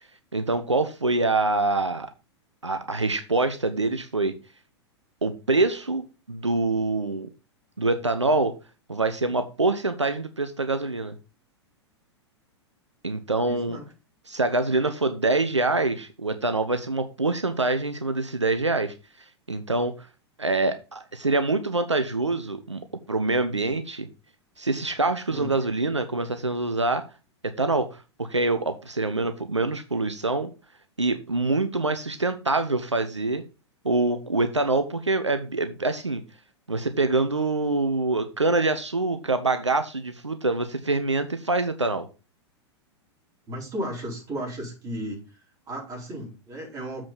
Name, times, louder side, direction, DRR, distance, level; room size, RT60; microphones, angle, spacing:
voice 1, 0.3-2.1 2.6-4.3 5.2-7.3 7.8-8.6 8.9-11.1 13.0-13.8 14.3-18.9 19.5-20.1 20.4-24.1 24.6-27.0 27.4-30.5 31.0-33.4 33.8-36.2 36.7-42.1, right 2 dB, 90° right, 9 dB, 0.7 m, -25 dB
voice 2, 13.4-13.9 25.3-25.5 43.5-45.4 45.7-47.0, right 1 dB, 25° right, -2 dB, 4.7 m, -34 dB
7.4 x 5.0 x 5.6 m, 0.31 s
figure-of-eight pair, 100°, 15 cm